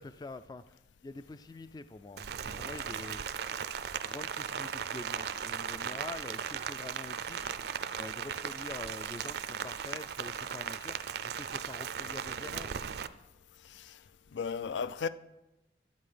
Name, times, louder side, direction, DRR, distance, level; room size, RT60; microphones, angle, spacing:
voice 1, 0.0-2.3 2.5-3.2 4.0-12.8, left 2 dB, 20° left, 0.3 m, -46 dB
Rain, 2.2-13.1, right 7 dB, 60° right, 0.4 m, -37 dB
voice 2, 14.3-15.1, left 6 dB, 85° left, 0.4 m, -35 dB
12.0 x 8.3 x 5.0 m
head